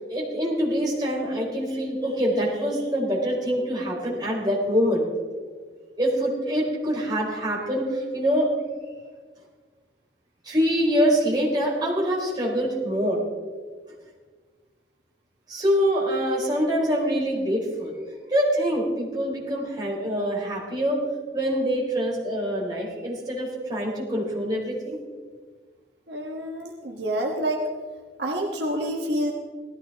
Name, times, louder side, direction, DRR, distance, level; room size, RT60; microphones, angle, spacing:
voice 1, 0.1-5.1 6.0-8.5 10.4-13.2 15.5-17.9 18.3-21.0 21.3-25.0, equal, 25° right, -4 dB, 3.9 m, -25 dB
voice 2, 26.1-27.7 28.2-29.3, right 1 dB, 70° right, 0 dB, 1.5 m, -28 dB
18.5 x 14.5 x 3.6 m, 1.5 s
head